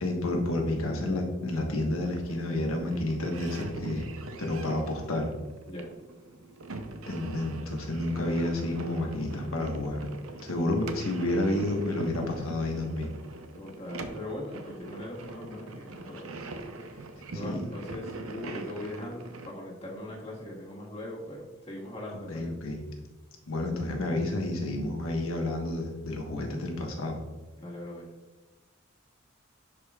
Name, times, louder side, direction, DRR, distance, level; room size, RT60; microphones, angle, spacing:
voice 1, 0.0-4.1 4.4-5.3 7.1-10.1 10.4-13.1 17.4-17.6 22.1-22.8 23.5-27.2, left 1 dB, 85° left, 1 dB, 1.3 m, -30 dB
sound 1, 1.9-19.5, right 2 dB, 85° right, 0.7 m, -42 dB
voice 2, 13.5-16.3 16.8-17.0 17.3-22.5 27.6-28.1, left 1 dB, 30° left, -4 dB, 1.6 m, -40 dB
10.5 x 5.0 x 2.4 m, 1.2 s
head